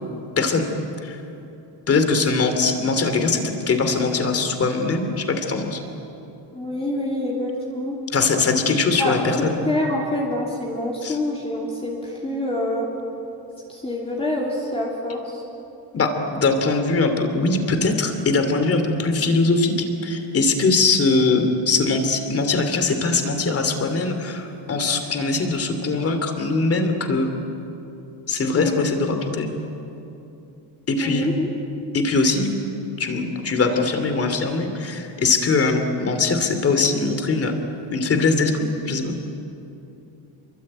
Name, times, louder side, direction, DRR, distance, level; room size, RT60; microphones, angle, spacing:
voice 1, 0.4-0.7 1.0-1.2 1.9-5.8 8.1-9.6 11.0-11.2 15.9-27.4 28.3-29.5 30.9-31.3 31.9-32.5 33.0-37.5 37.9-39.1, left 3 dB, 30° left, 7 dB, 3.1 m, -21 dB
voice 2, 6.5-8.0 9.0-12.9 13.7-15.4 28.6-28.8 31.0-31.5, left 1 dB, 15° left, -3 dB, 3.2 m, -26 dB
28.0 x 23.5 x 8.9 m, 2.9 s
cardioid pair, 155°, 44 cm